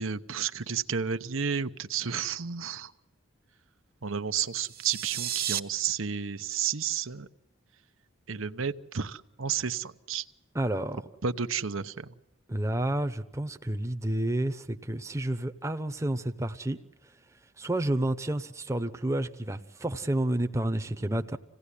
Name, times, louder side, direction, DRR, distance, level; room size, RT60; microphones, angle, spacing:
voice 1, 0.0-2.9 4.0-7.3 8.3-10.2 11.2-12.1, right 7 dB, 85° right, 1.0 m, -31 dB
sound 1, 4.5-5.6, right 11 dB, 50° right, 1.0 m, -32 dB
voice 2, 10.5-11.0 12.5-16.8 17.6-21.4, right 1 dB, 15° right, 0.8 m, -30 dB
26.5 x 17.0 x 10.0 m
head